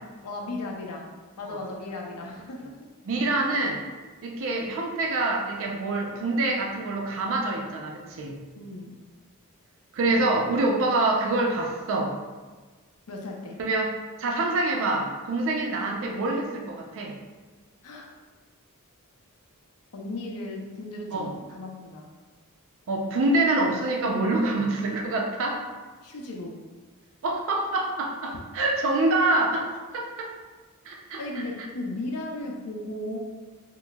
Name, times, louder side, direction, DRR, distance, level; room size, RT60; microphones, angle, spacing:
voice 1, 0.2-2.9 8.6-9.0 13.1-13.6 17.8-18.1 19.9-22.1 26.0-26.6 28.2-28.4 31.2-33.2, left 2 dB, 90° left, 0 dB, 0.6 m, -36 dB
voice 2, 3.1-3.8 4.2-8.4 9.9-12.1 13.6-13.9 14.2-17.1 21.1-21.3 22.9-25.6 27.2-29.7 29.9-30.3 30.9-31.2, right 2 dB, 65° right, 0 dB, 0.5 m, -26 dB
5.9 x 2.0 x 2.2 m, 1.4 s
head